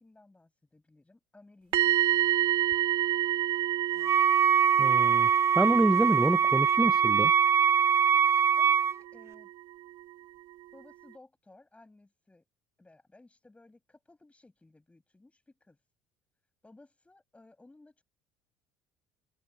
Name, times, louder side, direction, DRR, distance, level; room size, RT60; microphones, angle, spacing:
voice 1, 0.0-2.5 3.9-4.3 8.5-9.5 10.7-12.5 12.8-15.8 16.6-18.0, left 2 dB, 15° left, 7.5 m, -58 dB
sound 1, 1.7-9.6 9.9-10.1, right 13 dB, 60° right, 1.3 m, -30 dB
Wind instrument woodwind instrument, 4.0-9.0, right 7 dB, 30° right, 0.3 m, -23 dB
voice 2, 4.8-5.3 5.6-7.3, right 1 dB, 5° right, 0.8 m, -27 dB
hypercardioid pair, 65°, 9 cm